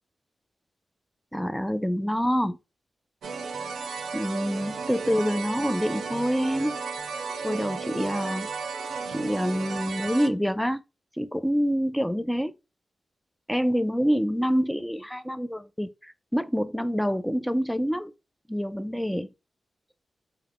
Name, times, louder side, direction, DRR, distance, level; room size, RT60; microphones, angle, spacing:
voice 1, 1.3-2.6 4.1-6.8 7.4-8.5 9.1-10.8 11.2-12.5 13.5-18.1 18.5-19.3, equal, 5° left, 0.4 m, -26 dB
sound 1, 3.2-10.3, right 5 dB, 85° right, 0.4 m, -34 dB
2.3 x 2.1 x 3.4 m
cardioid pair, 45°, 0 cm